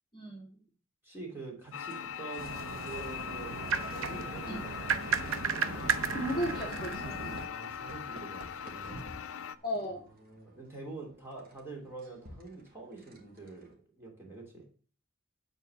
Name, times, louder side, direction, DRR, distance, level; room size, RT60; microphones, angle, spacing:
voice 1, 0.1-0.6 4.5-4.6 6.1-7.4 9.6-10.0, equal, 20° left, -2 dB, 1.7 m, -35 dB
voice 2, 1.0-5.9 7.4-9.2 10.2-13.7 13.9-14.6, right 3 dB, 10° right, -2 dB, 3.0 m, -46 dB
sound 1, 1.7-9.6, left 7 dB, 85° left, 0.5 m, -41 dB
sound 2, 1.8-3.2 3.5-3.7 4.4-13.7, equal, 45° right, 1.9 m, -53 dB
sound 3, 2.4-7.5, right 5 dB, 85° right, 0.7 m, -34 dB
9.7 x 4.1 x 6.9 m, 0.40 s
head